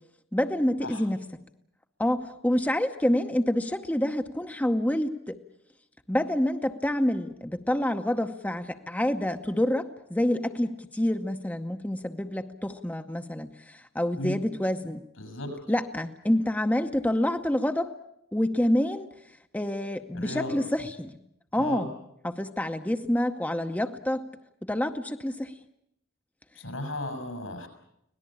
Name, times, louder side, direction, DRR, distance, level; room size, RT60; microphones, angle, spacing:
voice 1, 0.3-1.2 2.0-5.4 6.1-15.0 15.7-17.9 18.3-19.1 19.5-21.2 21.5-21.9 22.2-24.2 24.6-25.5, left 1 dB, 10° left, 6 dB, 0.8 m, -27 dB
voice 2, 15.2-15.6 20.1-20.5 21.6-21.9 26.5-27.7, left 1 dB, 85° left, 8 dB, 6.0 m, -35 dB
25.0 x 18.0 x 8.5 m, 0.78 s
head